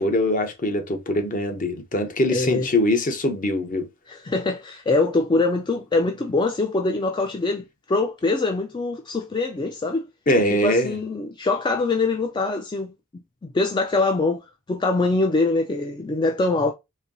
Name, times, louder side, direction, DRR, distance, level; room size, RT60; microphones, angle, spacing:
voice 1, 0.0-3.9 10.3-11.0, left 1 dB, 40° left, 0.9 m, -22 dB
voice 2, 2.3-2.7 4.1-10.1 10.6-16.7, left 3 dB, 20° left, 0.3 m, -24 dB
4.3 x 2.6 x 2.6 m
head